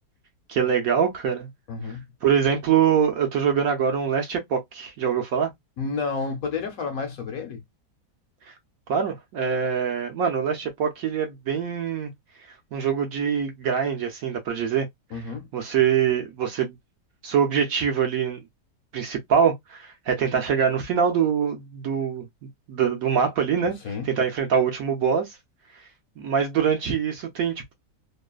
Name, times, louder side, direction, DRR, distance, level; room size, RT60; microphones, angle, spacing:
voice 1, 0.5-1.5 2.2-5.5 8.9-12.1 12.7-14.9 15.5-16.7 17.2-18.4 18.9-22.3 22.7-23.8 24.0-25.4 26.2-27.7, right 7 dB, 65° right, 1.0 m, -24 dB
voice 2, 1.7-2.1 5.8-7.6 15.1-15.5 23.6-24.2, left 4 dB, 60° left, 1.1 m, -31 dB
3.0 x 2.1 x 2.2 m
omnidirectional pair, 1.9 m